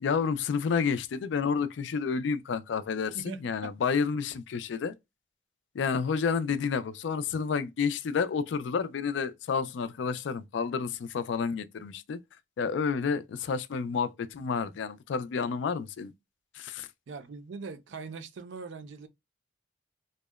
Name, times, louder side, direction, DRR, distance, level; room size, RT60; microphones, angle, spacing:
voice 1, 0.0-4.9 5.7-12.2 12.6-16.1 16.5-16.9, left 5 dB, 75° left, 0.3 m, -30 dB
voice 2, 3.1-3.7 17.1-19.1, right 4 dB, 85° right, 0.4 m, -41 dB
2.7 x 2.0 x 2.2 m
head